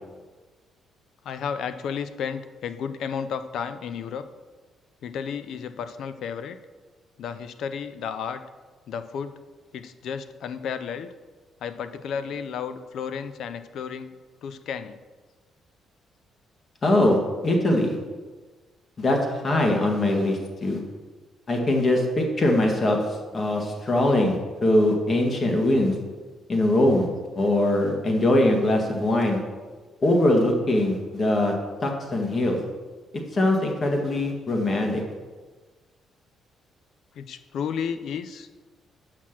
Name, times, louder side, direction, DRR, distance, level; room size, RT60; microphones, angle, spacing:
voice 1, 1.2-4.3 5.0-6.6 7.2-8.4 8.9-9.4 9.7-11.1 11.6-14.1 14.4-15.0 37.1-38.5, left 7 dB, 75° left, 11 dB, 0.5 m, -32 dB
voice 2, 16.8-17.2 17.4-18.0 19.0-20.8 21.5-23.0 23.3-25.9 26.5-27.1 27.3-29.4 30.0-31.5 31.8-32.6 33.3-35.0, left 1 dB, 40° left, 2 dB, 1.6 m, -22 dB
6.5 x 5.9 x 5.9 m, 1.4 s
cardioid pair, 90°, 0 cm